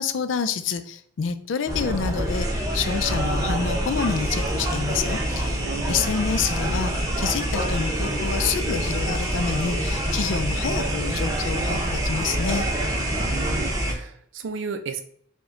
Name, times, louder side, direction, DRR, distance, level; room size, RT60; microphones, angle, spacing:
voice 1, 0.0-2.5 2.7-5.6 5.9-12.6, left 6 dB, 90° left, 12 dB, 0.4 m, -28 dB
sound 1, 1.7-13.9, right 1 dB, 20° right, 0.7 m, -26 dB
voice 2, 5.6-6.1 13.1-15.0, right 5 dB, 85° right, 8 dB, 0.5 m, -33 dB
4.9 x 2.2 x 3.7 m, 0.63 s
head